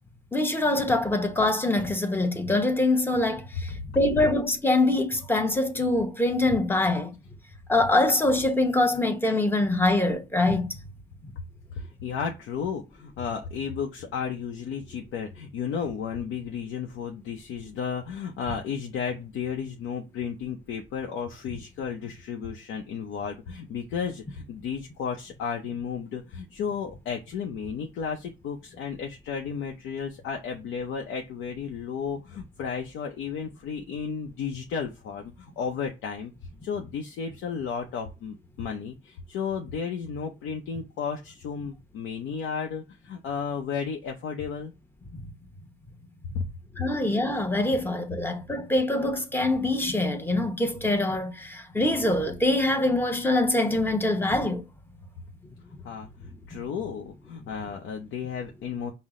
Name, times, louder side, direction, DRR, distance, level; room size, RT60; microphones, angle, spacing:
voice 1, 0.3-7.1 7.7-10.8 11.2-11.3 45.1-45.4 46.8-54.6 56.5-56.6, left 2 dB, 10° left, 0.8 m, -24 dB
voice 2, 11.7-36.3 36.6-44.7 46.3-46.4 55.8-58.9, left 6 dB, 90° left, 0.6 m, -33 dB
5.5 x 2.0 x 3.7 m
cardioid pair, 90°, 20 cm